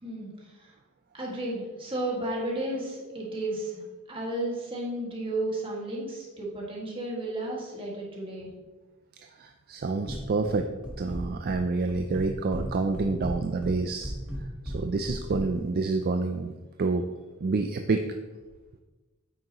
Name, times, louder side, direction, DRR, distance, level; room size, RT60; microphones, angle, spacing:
voice 1, 1.1-8.5, right 1 dB, 25° right, -3 dB, 1.9 m, -33 dB
voice 2, 9.4-10.7 11.0-14.1 14.6-16.5 16.8-17.1 17.4-18.0, right 3 dB, 45° right, 6 dB, 0.4 m, -28 dB
sound 1, 10.1-10.6 10.8-11.6 11.9-12.7 12.9-15.4, equal, 5° right, 1.3 m, -35 dB
8.7 x 6.2 x 3.0 m, 1.2 s
head